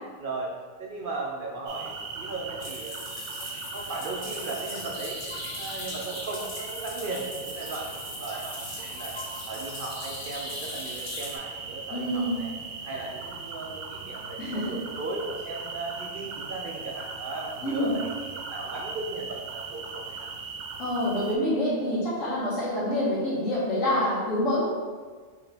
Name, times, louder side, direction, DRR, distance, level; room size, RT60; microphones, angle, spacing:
voice 1, 0.2-0.5 0.8-3.0 3.7-5.2 5.6-9.1 9.5-12.5 12.8-20.2, right 3 dB, 60° right, -1 dB, 0.6 m, -36 dB
sound 1, 1.7-21.4, right 4 dB, 75° right, 0.9 m, -39 dB
sound 2, 2.6-11.4, left 2 dB, 50° left, 1.0 m, -39 dB
voice 2, 11.9-12.4 14.4-14.8 17.6-17.9 20.8-24.6, left 1 dB, 85° left, -8 dB, 1.8 m, -27 dB
4.5 x 3.3 x 3.3 m, 1.5 s
omnidirectional pair, 1.3 m